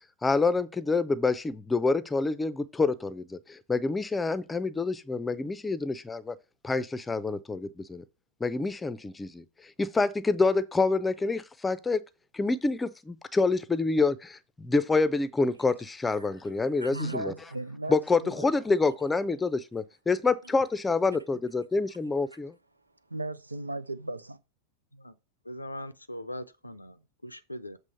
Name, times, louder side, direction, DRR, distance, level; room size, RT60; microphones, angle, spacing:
voice 1, 0.2-6.4 6.6-8.0 8.4-9.4 9.8-12.0 12.3-17.3 17.9-22.5, left 3 dB, 10° left, 0.6 m, -27 dB
voice 2, 16.8-18.5 21.1-21.2 23.1-24.4, right 2 dB, 85° right, 0.5 m, -36 dB
voice 3, 25.4-27.8, left 1 dB, 85° left, 0.6 m, -41 dB
7.5 x 3.2 x 6.2 m
figure-of-eight pair, 90°, 0 cm